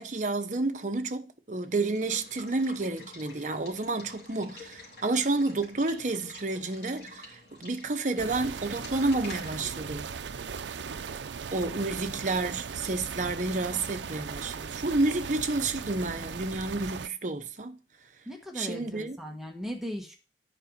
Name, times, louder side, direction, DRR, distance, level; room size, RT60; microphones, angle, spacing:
voice 1, 0.0-10.1 11.5-17.8 18.5-19.2, right 2 dB, 45° right, 0.9 m, -30 dB
Water / Water tap faucet / Liquid, 1.6-11.2, left 2 dB, 60° left, 3.4 m, -49 dB
sound 1, 8.2-17.1, right 6 dB, 85° right, 0.5 m, -38 dB
voice 2, 18.2-20.1, equal, ahead, 1.2 m, -38 dB
10.0 x 5.1 x 5.2 m
head